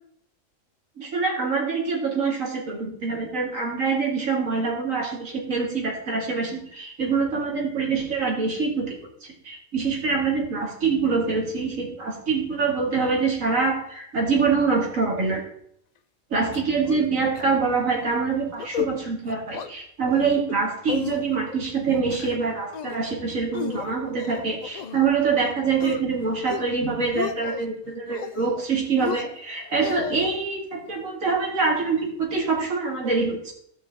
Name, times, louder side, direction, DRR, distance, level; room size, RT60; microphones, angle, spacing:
voice 1, 1.0-9.0 9.4-15.4 16.3-33.5, right 4 dB, 85° right, -1 dB, 2.5 m, -25 dB
sound 1, 16.5-17.1 17.3-17.4 17.8-18.1 18.5-18.9 19.2-19.7 20.1-20.5 20.9-21.5 21.9-22.4 22.7-23.1 23.5-25.0 25.4-26.0 26.4-26.8 27.0-27.7 28.1-28.6 29.0-30.3, left 8 dB, 85° left, 0.3 m, -33 dB
15.5 x 5.5 x 3.5 m, 0.69 s
omnidirectional pair, 1.4 m